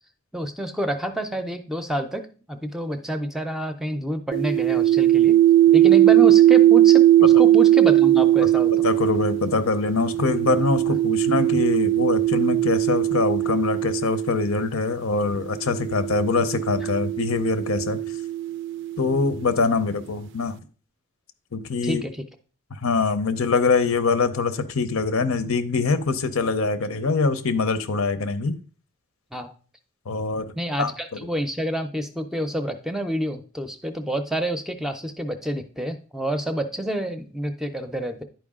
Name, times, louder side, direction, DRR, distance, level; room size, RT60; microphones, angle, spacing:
voice 1, 0.3-5.4 5.7-8.9 21.8-22.1 29.3-29.5 30.6-38.2, equal, ahead, 7 dB, 0.5 m, -28 dB
sound 1, 4.3-14.7 15.6-19.3, right 13 dB, 60° right, 0.4 m, -19 dB
voice 2, 8.8-18.0 19.0-20.6 21.5-22.0 22.7-28.5 30.1-30.5 30.8-31.2, left 4 dB, 85° left, 12 dB, 0.7 m, -24 dB
10.5 x 4.6 x 3.6 m, 0.40 s
head